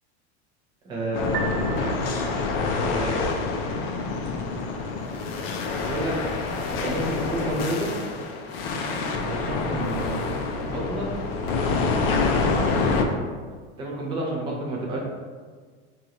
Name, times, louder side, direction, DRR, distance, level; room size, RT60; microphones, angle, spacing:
voice 1, 0.8-1.7 2.9-3.3 5.8-6.2 6.7-7.9 9.2-10.3 10.6-11.1 12.8-13.1 13.8-15.0, right 1 dB, 15° right, -4 dB, 0.5 m, -30 dB
sound 1, 1.1-13.0, left 4 dB, 60° left, 0.5 m, -27 dB
Piano, 1.2-14.2, right 6 dB, 65° right, 0.5 m, -45 dB
3.0 x 2.5 x 4.0 m, 1.5 s
supercardioid pair, 165°, 32 cm